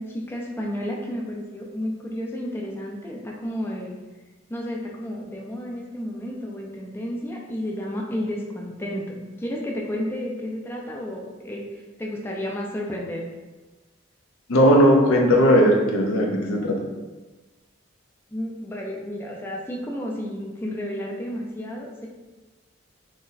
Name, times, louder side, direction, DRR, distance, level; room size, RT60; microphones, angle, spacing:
voice 1, 0.0-4.0 4.5-13.3 18.3-22.1, equal, 10° left, -2 dB, 0.3 m, -32 dB
voice 2, 14.5-16.8, equal, 85° left, 1 dB, 0.5 m, -17 dB
2.5 x 2.1 x 3.8 m, 1.2 s
head